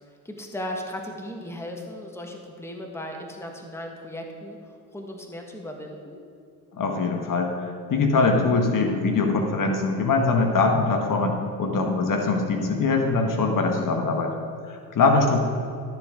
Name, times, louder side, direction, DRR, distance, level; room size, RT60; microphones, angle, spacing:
voice 1, 0.2-6.2, left 1 dB, 5° left, 2 dB, 1.5 m, -36 dB
voice 2, 6.7-14.3 14.7-15.4, left 3 dB, 40° left, 3 dB, 1.4 m, -22 dB
12.5 x 7.2 x 3.8 m, 2.4 s
hypercardioid pair, 65°, 47 cm